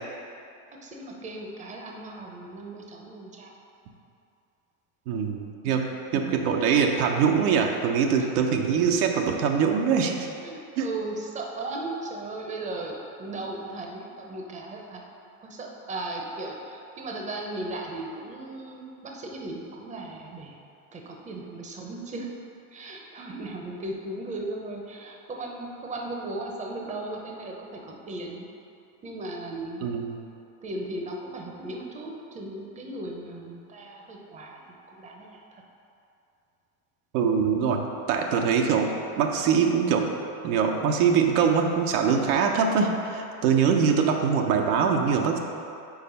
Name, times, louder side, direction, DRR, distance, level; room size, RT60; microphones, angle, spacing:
voice 1, 0.7-3.5 5.6-6.2 8.1-8.3 10.4-15.1 15.4-20.6 20.9-22.3 22.7-28.5 29.0-29.9 30.6-35.6, right 2 dB, 15° right, 0 dB, 0.7 m, -37 dB
voice 2, 5.1-5.8 6.1-10.1 10.8-10.9 29.8-30.2 37.1-40.1 40.4-45.4, right 6 dB, 75° right, 2 dB, 0.8 m, -23 dB
5.0 x 4.1 x 5.3 m, 2.6 s
supercardioid pair, 120°, 45 cm